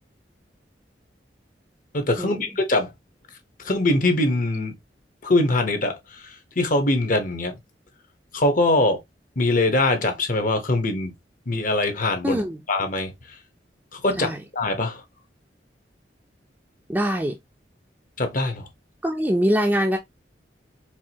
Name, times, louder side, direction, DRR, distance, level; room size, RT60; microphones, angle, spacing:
voice 1, 1.9-2.9 3.6-4.7 5.2-7.5 8.3-9.0 9.4-11.1 11.5-12.4 12.7-13.1 13.9-15.0 18.2-18.7, left 2 dB, 50° left, 1.0 m, -22 dB
voice 2, 12.2-12.6 14.2-14.4 16.9-17.4 19.0-20.0, equal, 10° right, 0.5 m, -23 dB
4.7 x 2.6 x 2.8 m
head